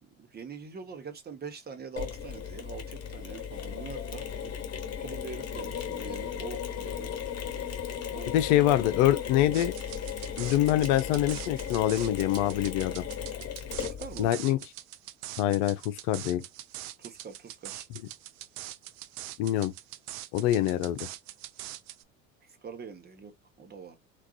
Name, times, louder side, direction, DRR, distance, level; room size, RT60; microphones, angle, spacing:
voice 1, 0.0-4.5 5.0-7.1 8.1-8.7 13.8-14.3 17.0-17.9 22.4-24.0, right 5 dB, 25° right, 0.9 m, -44 dB
Mechanisms, 2.0-14.3, left 8 dB, 35° left, 1.3 m, -36 dB
voice 2, 8.3-9.7 10.4-13.0 14.2-14.6 15.4-16.4 19.4-19.7 20.3-21.1, left 13 dB, 55° left, 0.6 m, -25 dB
sound 1, 9.5-22.0, right 15 dB, 45° right, 0.4 m, -43 dB
3.5 x 2.4 x 2.3 m
hypercardioid pair, 75°, 42 cm